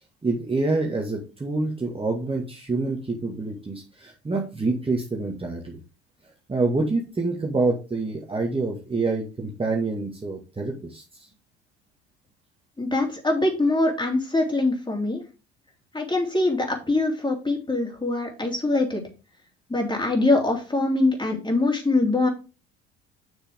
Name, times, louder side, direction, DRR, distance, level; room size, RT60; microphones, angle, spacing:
voice 1, 0.2-5.8 6.5-11.3, right 3 dB, 15° right, 0 dB, 1.9 m, -27 dB
voice 2, 12.8-15.2 15.9-19.0 19.7-22.3, left 2 dB, 15° left, 1 dB, 3.4 m, -23 dB
7.7 x 6.6 x 3.7 m, 0.32 s
hypercardioid pair, 60°, 32 cm